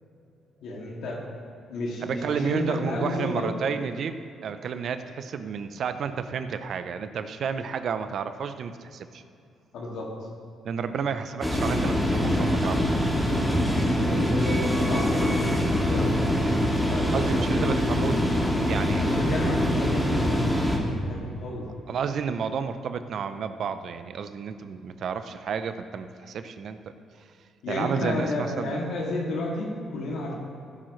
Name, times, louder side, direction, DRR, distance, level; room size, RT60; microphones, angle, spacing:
voice 1, 0.6-1.2 1.7-3.5 9.7-10.1 11.0-11.1 14.0-16.1 16.9-17.5 19.0-20.3 20.7-21.6 27.6-30.3, left 1 dB, 80° left, -2 dB, 2.4 m, -31 dB
voice 2, 2.0-4.2 4.4-9.2 10.6-13.0 17.1-18.2 18.7-19.0 21.9-26.8 27.7-28.8, right 6 dB, 65° right, 10 dB, 0.6 m, -31 dB
sound 1, 11.4-20.8, equal, ahead, 2.1 m, -24 dB
15.5 x 8.9 x 3.2 m, 2.5 s
cardioid pair, 90°, 0 cm